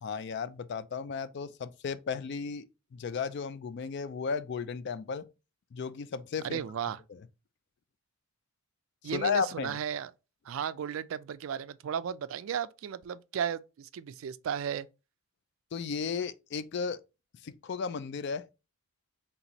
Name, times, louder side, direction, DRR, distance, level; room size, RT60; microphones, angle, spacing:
voice 1, 0.0-2.7 2.9-5.2 5.7-6.6 9.1-9.8 15.7-17.0 17.4-18.5, left 5 dB, 50° left, 0.3 m, -34 dB
voice 2, 6.4-7.0 9.0-10.1 10.5-14.9, right 8 dB, 65° right, 0.3 m, -35 dB
3.5 x 2.9 x 4.1 m
head